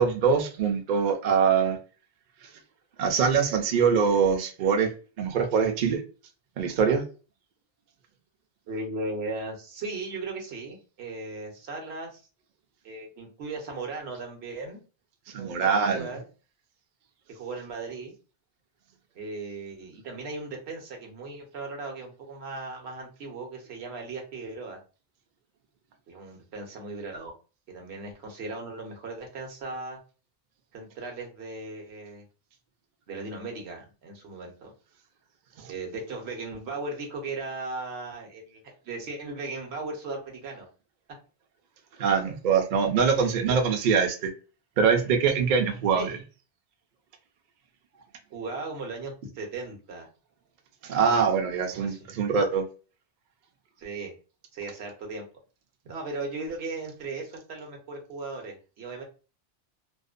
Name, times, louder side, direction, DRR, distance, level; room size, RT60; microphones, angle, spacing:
voice 1, 0.0-1.8 3.0-4.9 5.2-6.0 6.6-7.0 15.3-16.1 42.0-44.3 44.8-46.1 50.8-52.7, right 6 dB, 60° right, 0.6 m, -23 dB
voice 2, 8.7-12.2 12.8-14.8 15.4-16.2 17.3-18.1 19.1-24.8 26.1-27.3 27.7-30.0 30.7-32.2 33.1-34.7 35.7-40.7 43.2-43.6 46.0-46.1 48.3-50.1 51.1-51.3 51.7-52.0 53.8-54.1 54.5-55.2 55.8-59.0, right 3 dB, 75° right, 1.0 m, -37 dB
2.5 x 2.1 x 2.4 m
omnidirectional pair, 1.1 m